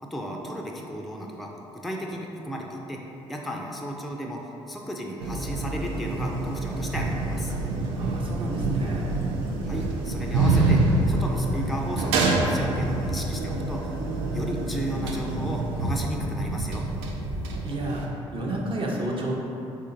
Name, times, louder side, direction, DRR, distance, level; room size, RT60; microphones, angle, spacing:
voice 1, 0.0-3.0 3.3-7.5 9.6-10.8 11.1-13.9 14.3-16.8, equal, ahead, 0 dB, 0.4 m, -34 dB
sound 1, 5.2-18.1, right 2 dB, 70° right, 0.4 m, -26 dB
voice 2, 8.0-9.1 17.6-19.3, right 1 dB, 35° right, -2 dB, 0.7 m, -31 dB
4.1 x 3.7 x 2.6 m, 2.9 s
figure-of-eight pair, 45°, 15 cm